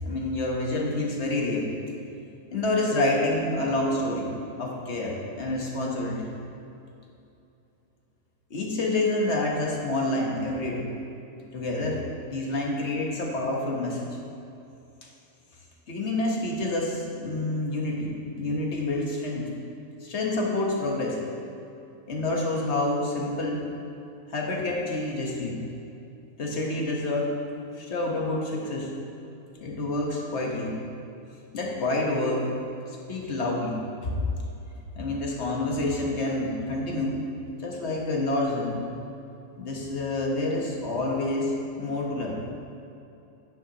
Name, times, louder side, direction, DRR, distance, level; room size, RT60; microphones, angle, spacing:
voice 1, 0.0-1.7 2.5-6.3 8.5-10.9 11.5-14.2 15.9-19.5 20.0-21.2 22.1-23.7 24.3-25.6 26.4-27.3 27.7-28.9 29.6-30.8 31.5-32.5 32.9-34.1 34.9-37.2 37.6-38.9 39.6-42.4, left 2 dB, 55° left, -1 dB, 1.4 m, -28 dB
9.9 x 8.8 x 2.9 m, 2.8 s
omnidirectional pair, 1.4 m